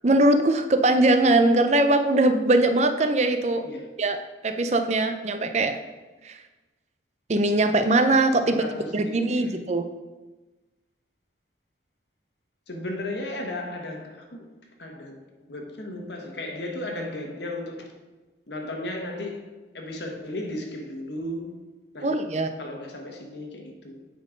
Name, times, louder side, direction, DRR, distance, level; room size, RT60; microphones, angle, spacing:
voice 1, 0.0-3.7 4.0-4.2 4.4-5.8 6.2-6.4 7.3-8.6 8.9-9.8 22.0-22.5, right 2 dB, 40° right, 0.5 m, -21 dB
voice 2, 8.4-9.6 12.7-14.5 14.8-15.2 15.5-18.0 18.5-21.6 21.9-22.2 22.6-24.1, left 1 dB, 70° left, 1.3 m, -35 dB
9.2 x 4.3 x 5.2 m
head